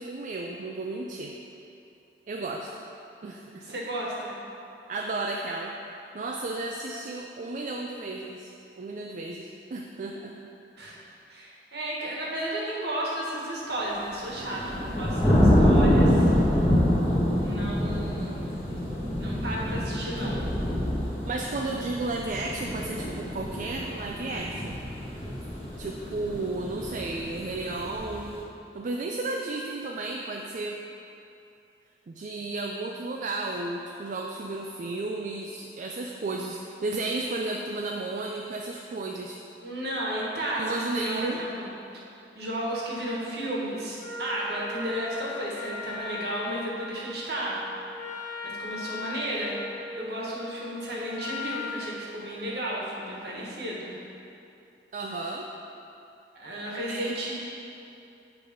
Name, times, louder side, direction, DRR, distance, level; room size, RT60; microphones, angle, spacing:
voice 1, 0.0-1.3 2.3-2.7 3.2-3.8 4.9-5.7 6.1-10.4 21.2-24.8 25.8-28.5 28.7-30.8 32.1-39.4 40.6-41.4 54.9-55.5 56.9-57.1, right 2 dB, 45° right, 1 dB, 0.4 m, -33 dB
voice 2, 3.6-4.4 10.8-11.0 11.3-16.3 17.4-18.5 19.2-20.4 39.6-41.7 42.3-47.6 48.4-49.6 50.0-54.0 56.3-57.3, right 1 dB, 65° right, -4 dB, 1.4 m, -33 dB
sound 1, 14.1-28.3, equal, 10° left, 1.3 m, -26 dB
Wind instrument woodwind instrument, 44.0-51.9, left 4 dB, 40° left, 1.1 m, -38 dB
8.5 x 3.4 x 5.2 m, 2.7 s
head